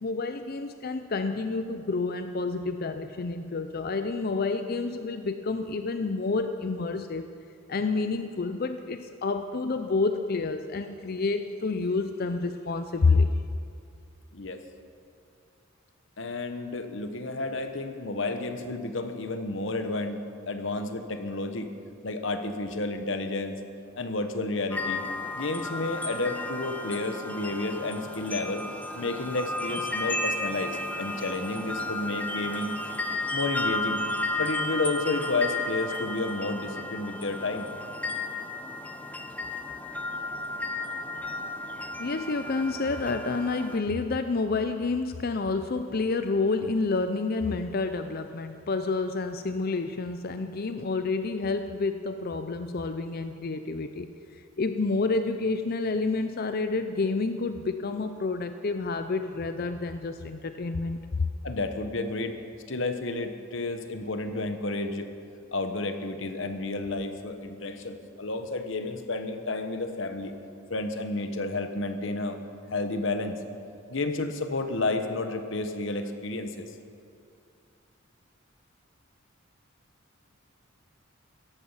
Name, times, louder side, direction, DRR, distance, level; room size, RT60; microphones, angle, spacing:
voice 1, 0.0-7.3 7.7-13.4 42.0-54.1 54.6-61.3, left 3 dB, 45° left, 9 dB, 0.5 m, -29 dB
voice 2, 16.2-21.7 22.0-23.6 23.9-25.0 25.3-28.7 28.9-32.8 33.3-34.0 34.4-37.7 42.1-42.2 61.4-62.3 62.7-65.1 65.5-70.3 70.7-72.4 72.7-73.4 73.9-76.7, left 2 dB, 60° left, 8 dB, 1.1 m, -31 dB
sound 1, 24.7-43.8, left 2 dB, 5° left, 0.8 m, -33 dB
17.5 x 14.0 x 5.6 m, 2.5 s
head